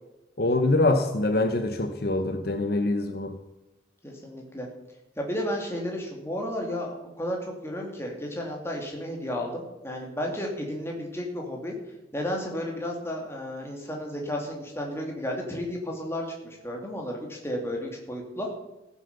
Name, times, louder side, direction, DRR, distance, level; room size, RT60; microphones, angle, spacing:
voice 1, 0.4-3.3, left 2 dB, 55° left, 7 dB, 0.8 m, -24 dB
voice 2, 4.0-4.7 5.2-11.7 12.1-18.5, equal, 15° left, 0 dB, 2.4 m, -33 dB
15.0 x 7.4 x 6.7 m, 1.0 s
head